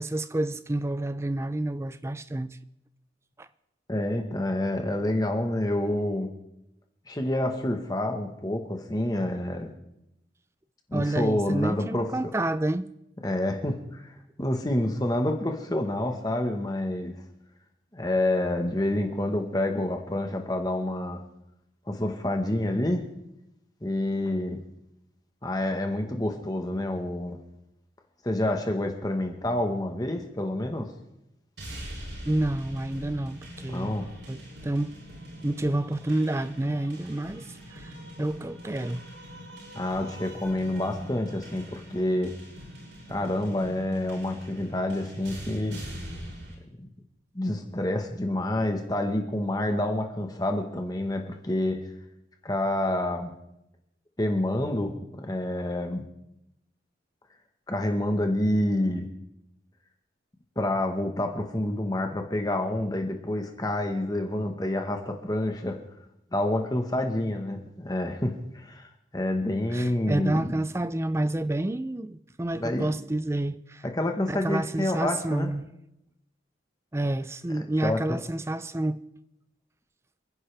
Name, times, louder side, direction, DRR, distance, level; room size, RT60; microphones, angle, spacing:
voice 1, 0.0-2.6 3.4-3.5 10.9-12.9 32.3-35.0 35.4-39.0 69.7-73.8 74.3-75.7 76.9-79.0, right 1 dB, 15° right, 0.4 m, -29 dB
voice 2, 3.9-6.3 7.1-9.7 10.9-12.1 13.2-14.1 14.4-17.1 17.9-21.2 21.9-23.0 23.8-24.6 25.4-27.4 28.2-30.9 33.7-34.1 39.7-42.3 43.1-45.8 46.8-46.9 47.3-51.8 52.4-53.3 54.2-56.0 57.7-59.1 60.6-65.8 66.3-70.6 72.6-72.9 73.9-75.5 77.8-78.2, left 1 dB, 20° left, 1.3 m, -28 dB
sound 1, 31.6-46.6, equal, 75° right, 6.5 m, -43 dB
28.5 x 10.5 x 3.4 m
head